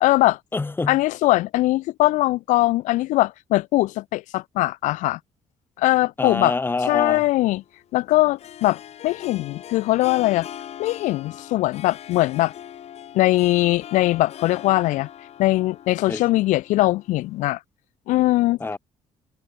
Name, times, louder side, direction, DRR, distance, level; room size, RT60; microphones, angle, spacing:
voice 1, 0.0-0.4 0.9-5.2 5.8-6.5 6.9-7.6 7.9-10.5 10.8-12.5 13.1-15.1 15.4-17.6 18.1-18.6, left 18 dB, 90° left, 0.5 m, -21 dB
voice 2, 0.5-1.0 6.2-7.3 16.1-16.2 18.6-18.8, left 3 dB, 15° left, 2.6 m, -26 dB
Harp, 7.0-17.4, left 10 dB, 60° left, 8.0 m, -41 dB
cardioid pair, 130°, 13 cm